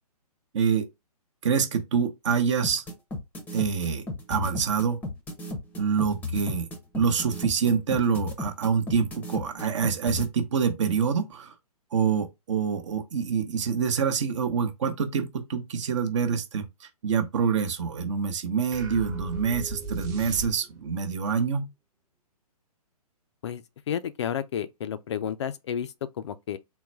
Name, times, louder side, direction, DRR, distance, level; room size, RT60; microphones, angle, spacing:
voice 1, 0.5-0.9 1.4-2.8 3.5-5.0 5.8-6.7 6.9-11.5 11.9-21.7, right 6 dB, 50° right, 0.9 m, -26 dB
sound 1, 2.6-10.3, left 2 dB, 10° left, 0.7 m, -34 dB
sound 2, 18.7-21.0, right 1 dB, 20° right, 0.8 m, -37 dB
voice 2, 23.4-26.6, left 9 dB, 45° left, 0.4 m, -32 dB
3.9 x 2.1 x 4.4 m
figure-of-eight pair, 130°, 20 cm